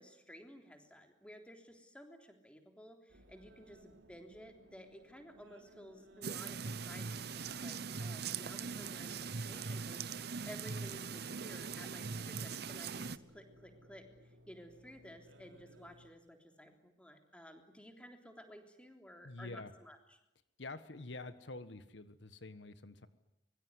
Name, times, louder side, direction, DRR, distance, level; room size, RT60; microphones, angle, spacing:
voice 1, 0.0-14.1 14.5-20.0, equal, 5° left, 5 dB, 3.5 m, -54 dB
sound 1, 3.1-16.1, equal, 90° right, 3.3 m, -61 dB
sound 2, 6.2-13.2, right 5 dB, 60° right, 0.9 m, -41 dB
voice 2, 19.2-19.7 20.6-23.1, left 2 dB, 75° left, 12 dB, 1.5 m, -47 dB
24.5 x 23.0 x 9.8 m, 0.84 s
head